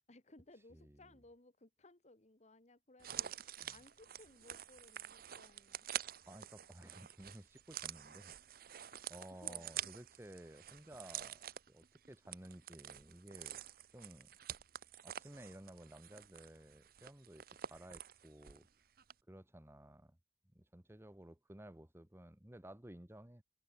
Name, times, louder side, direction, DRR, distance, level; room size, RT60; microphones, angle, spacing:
voice 1, 0.1-5.9 9.3-9.7, left 2 dB, 40° left, 1.7 m, -62 dB
sound 1, 3.0-18.7 19.0-19.1, right 11 dB, 55° right, 0.8 m, -48 dB
voice 2, 6.3-8.4 9.1-13.6 13.9-14.3 15.0-18.7 19.3-20.2 20.5-23.4, right 1 dB, 15° right, 1.1 m, -55 dB
open air
head